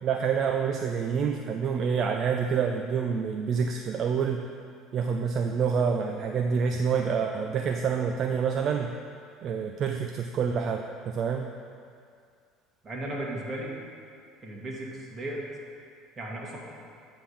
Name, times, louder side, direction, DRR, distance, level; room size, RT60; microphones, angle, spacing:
voice 1, 0.0-4.4 4.9-9.0 9.4-11.5, right 6 dB, 50° right, 4 dB, 0.5 m, -27 dB
voice 2, 12.8-13.7 14.4-15.4 16.2-16.6, right 1 dB, 30° right, -3 dB, 1.9 m, -35 dB
9.1 x 3.7 x 6.9 m, 2.3 s
supercardioid pair, 100°, 0 cm